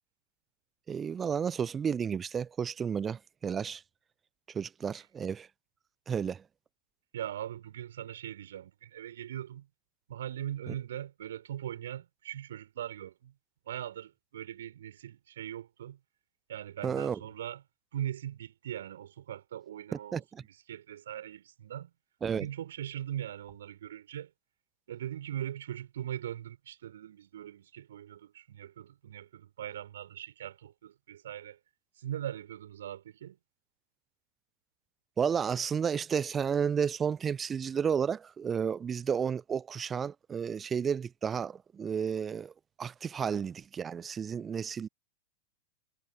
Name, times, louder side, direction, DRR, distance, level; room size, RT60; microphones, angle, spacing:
voice 1, 0.9-3.8 4.5-5.5 6.1-6.4 10.7-10.8 16.8-17.2 20.1-20.4 22.2-22.5 35.2-42.5 42.8-44.9, right 7 dB, 20° right, 0.6 m, -32 dB
voice 2, 7.1-9.7 10.1-13.3 13.7-16.0 16.5-17.6 17.9-21.9 22.3-24.3 24.9-31.6 32.0-33.4, right 11 dB, 60° right, 6.1 m, -40 dB
figure-of-eight pair, 90°, 0 cm